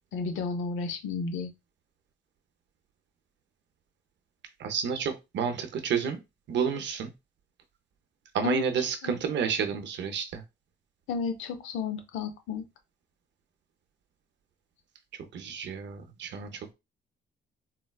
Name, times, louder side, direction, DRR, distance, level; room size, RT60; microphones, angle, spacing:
voice 1, 0.1-1.5 8.4-9.2 11.1-12.6, left 5 dB, 85° left, 0.6 m, -33 dB
voice 2, 4.6-6.2 6.5-7.1 8.3-10.4 15.3-16.7, right 7 dB, 65° right, 0.6 m, -30 dB
3.9 x 2.2 x 2.3 m
cardioid pair, 90°, 20 cm